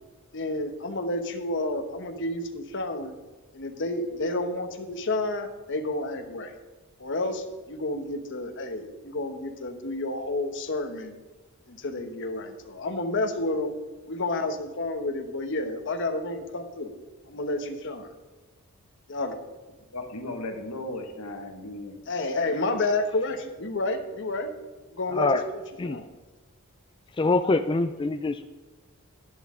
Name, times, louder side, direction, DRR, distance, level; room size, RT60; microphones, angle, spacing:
voice 1, 0.3-3.2 3.5-6.5 7.0-11.1 11.7-13.7 14.1-16.9 17.3-18.1 19.1-19.4 22.1-24.5 24.9-26.0, left 2 dB, 55° left, 6 dB, 1.1 m, -30 dB
voice 2, 19.9-21.9, left 1 dB, 85° left, 4 dB, 1.5 m, -36 dB
voice 3, 27.2-28.4, left 3 dB, 20° left, 9 dB, 0.3 m, -24 dB
11.0 x 10.5 x 3.7 m, 1.2 s
head